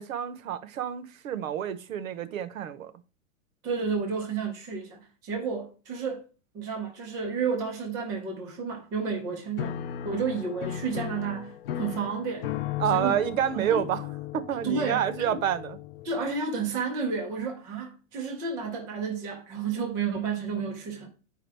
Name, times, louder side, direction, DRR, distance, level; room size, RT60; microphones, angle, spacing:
voice 1, 0.0-2.9 12.8-14.0 14.3-15.8, right 10 dB, 85° right, 0.9 m, -28 dB
voice 2, 3.6-6.2 6.5-9.7 10.0-12.5 12.9-13.2 13.5-13.7 14.6-15.4 16.0-21.1, right 5 dB, 10° right, 0.4 m, -31 dB
Piano, 9.6-16.4, left 10 dB, 50° left, 0.5 m, -36 dB
10.0 x 4.8 x 3.3 m
supercardioid pair, 165°, 40 cm